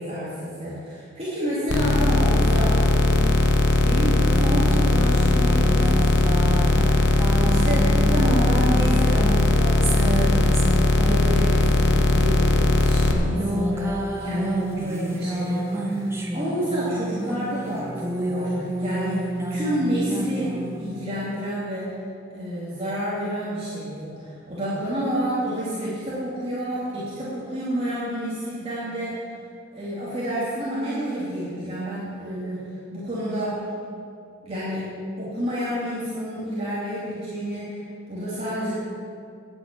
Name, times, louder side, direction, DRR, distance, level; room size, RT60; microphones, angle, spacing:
voice 1, 0.0-3.2 3.8-10.5 10.9-16.1 16.3-19.2 19.5-21.9 22.3-29.2 29.7-32.6 32.9-33.6 34.4-34.9 35.2-38.8, equal, 30° right, -10 dB, 2.7 m, -29 dB
sound 1, 1.7-13.1, left 2 dB, 55° left, 1.0 m, -19 dB
sound 2, 4.3-21.0, right 1 dB, 10° right, 1.0 m, -30 dB
9.9 x 8.0 x 8.6 m, 2.4 s
head